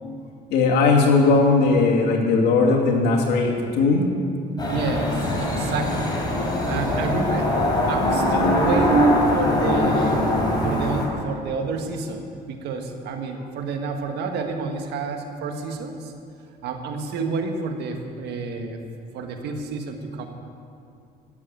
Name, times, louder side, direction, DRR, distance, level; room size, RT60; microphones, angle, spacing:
voice 1, 0.5-4.1 6.4-6.6, left 3 dB, 85° left, -1 dB, 2.4 m, -19 dB
sound 1, 4.6-11.1, left 1 dB, 25° left, 3.5 m, -22 dB
voice 2, 4.6-6.2 6.7-7.5 7.9-10.2 10.6-16.1 16.6-18.8 19.1-20.3, right 4 dB, 80° right, 4 dB, 1.7 m, -29 dB
13.0 x 7.7 x 9.3 m, 2.4 s
cardioid pair, 110°, 17 cm